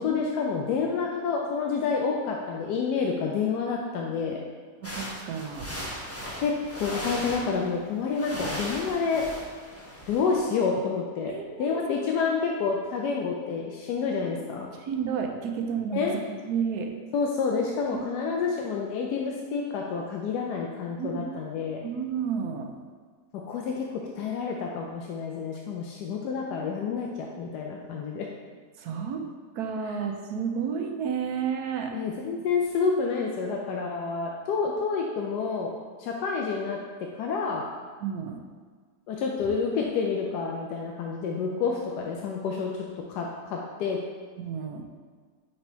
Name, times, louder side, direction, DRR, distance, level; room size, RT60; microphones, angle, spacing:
voice 1, 0.0-4.4 6.4-9.2 10.1-14.7 15.9-16.1 17.1-21.8 23.5-28.3 31.9-35.7 36.0-36.8 37.1-37.7 39.1-42.7 43.1-44.0, left 5 dB, 90° left, 0 dB, 1.2 m, -29 dB
sound 1, 4.8-7.8 8.0-10.4, equal, 10° left, 0.8 m, -37 dB
voice 2, 4.8-5.7 11.3-11.8 14.8-16.9 17.9-18.1 21.0-21.2 21.8-22.7 28.8-29.3 29.6-31.9 38.0-38.4 44.4-44.8, right 7 dB, 75° right, 4 dB, 1.2 m, -31 dB
5.2 x 4.2 x 4.5 m, 1.5 s
omnidirectional pair, 1.7 m